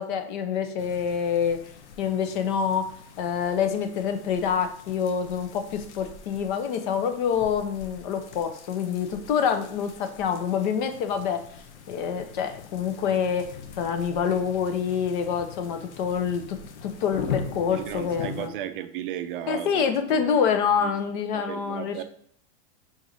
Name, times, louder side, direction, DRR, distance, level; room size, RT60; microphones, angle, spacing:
voice 1, 0.0-1.6 2.0-2.9 3.2-11.4 11.9-13.5 13.8-18.5 19.5-22.0, left 7 dB, 45° left, 8 dB, 0.6 m, -26 dB
sound 1, 0.8-18.5, left 6 dB, 85° left, 0.7 m, -41 dB
voice 2, 17.7-20.2 20.8-20.9 21.3-22.0, right 11 dB, 50° right, 10 dB, 0.4 m, -35 dB
4.6 x 3.9 x 2.6 m, 0.63 s
supercardioid pair, 145°, 34 cm